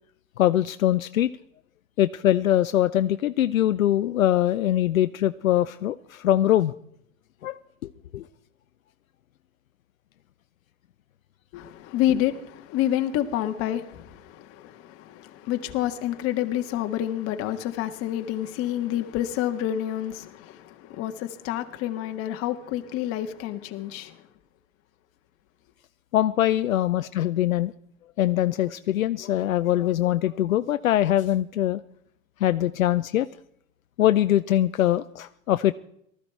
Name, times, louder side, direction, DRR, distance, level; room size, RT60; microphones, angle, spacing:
voice 1, 0.4-1.3 2.0-6.7 7.4-7.6 8.1-8.3 26.1-27.7 28.2-31.8 32.4-33.3 34.0-35.7, left 12 dB, 70° left, 0.7 m, -22 dB
voice 2, 11.5-24.2, left 12 dB, 35° left, 1.6 m, -28 dB
19.0 x 14.0 x 4.6 m
hypercardioid pair, 115°, 41 cm